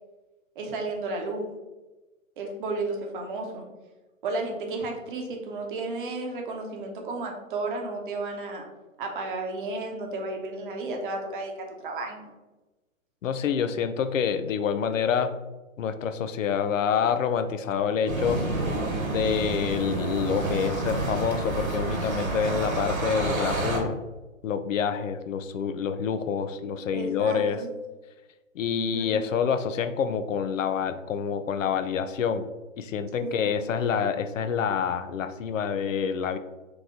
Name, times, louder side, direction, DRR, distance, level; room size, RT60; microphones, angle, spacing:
voice 1, 0.6-1.5 2.4-3.7 4.2-8.7 9.0-11.5 11.8-12.3 26.9-27.7 28.9-29.2 33.2-33.5, right 3 dB, 40° right, 2 dB, 0.9 m, -33 dB
voice 2, 13.2-15.4 15.8-18.4 19.1-24.0 24.4-27.6 28.5-32.5 32.8-36.4, left 7 dB, 70° left, 10 dB, 0.5 m, -27 dB
sound 1, 18.1-23.8, right 2 dB, 85° right, 1.4 m, -29 dB
3.8 x 3.1 x 3.6 m, 1.1 s
hypercardioid pair, 140°, 41 cm